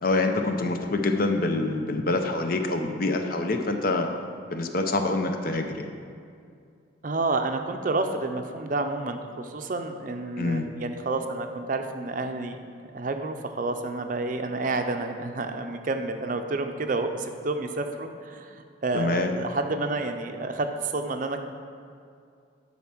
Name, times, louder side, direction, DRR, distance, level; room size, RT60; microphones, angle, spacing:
voice 1, 0.0-5.9 10.4-10.7 18.9-19.4, left 2 dB, 45° left, 5 dB, 0.6 m, -26 dB
voice 2, 7.0-12.6 12.9-18.5 18.8-21.4, right 3 dB, 40° right, 6 dB, 0.5 m, -29 dB
11.0 x 4.2 x 6.0 m, 2.4 s
head